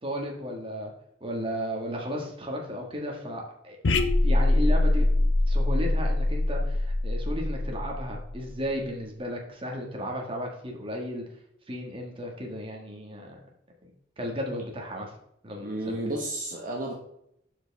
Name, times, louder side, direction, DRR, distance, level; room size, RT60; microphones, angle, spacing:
voice 1, 0.0-0.9 1.2-5.1 5.5-11.2 11.7-13.4 14.2-15.1 15.4-16.0, equal, 30° right, 0 dB, 1.8 m, -34 dB
sound 1, 3.8-8.5, left 2 dB, 85° left, 0.7 m, -24 dB
voice 2, 15.6-16.9, right 1 dB, 45° right, -2 dB, 1.3 m, -32 dB
11.5 x 5.1 x 3.5 m, 0.75 s
head